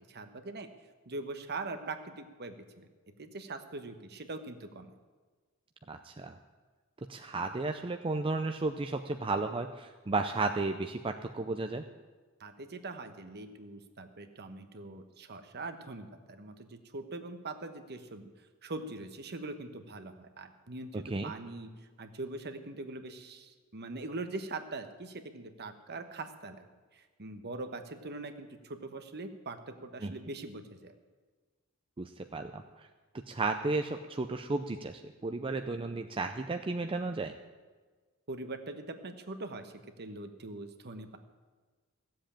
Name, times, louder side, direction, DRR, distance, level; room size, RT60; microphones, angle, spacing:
voice 1, 0.1-0.7 1.1-2.9 3.2-4.9 12.4-18.3 18.6-21.7 22.0-26.7 26.9-30.9 38.3-39.7 40.0-41.2, right 2 dB, 50° right, 7 dB, 1.2 m, -42 dB
voice 2, 5.9-6.4 7.1-11.8 20.9-21.3 30.0-30.1 32.0-32.9 33.3-37.3, right 3 dB, 25° right, 6 dB, 0.5 m, -33 dB
15.5 x 7.7 x 8.8 m, 1.4 s
head